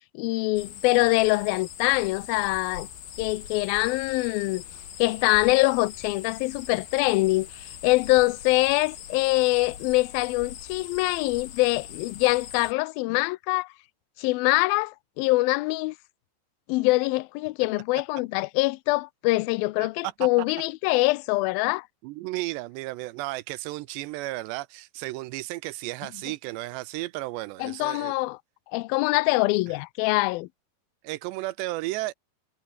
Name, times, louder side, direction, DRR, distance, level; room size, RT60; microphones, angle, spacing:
voice 1, 0.1-2.9 3.2-4.6 5.0-13.7 14.2-16.0 16.7-21.9 27.6-28.4 28.7-30.5, left 22 dB, 85° left, 2.1 m, -24 dB
sound 1, 0.5-12.7, left 10 dB, 65° left, 4.2 m, -42 dB
voice 2, 22.0-28.1 31.0-32.1, right 19 dB, 85° right, 2.9 m, -33 dB
omnidirectional pair, 5.0 m